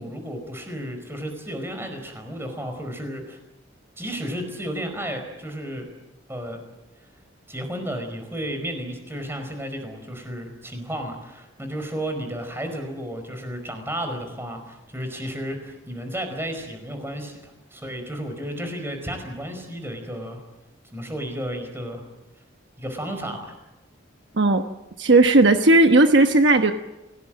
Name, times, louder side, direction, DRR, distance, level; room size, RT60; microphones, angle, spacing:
voice 1, 0.0-3.4 4.0-5.9 6.3-6.6 7.5-20.4 20.9-22.0 22.8-23.5, equal, 10° right, 6 dB, 4.9 m, -33 dB
voice 2, 25.0-26.7, right 2 dB, 60° right, 6 dB, 1.1 m, -15 dB
29.0 x 18.0 x 7.6 m, 0.98 s
head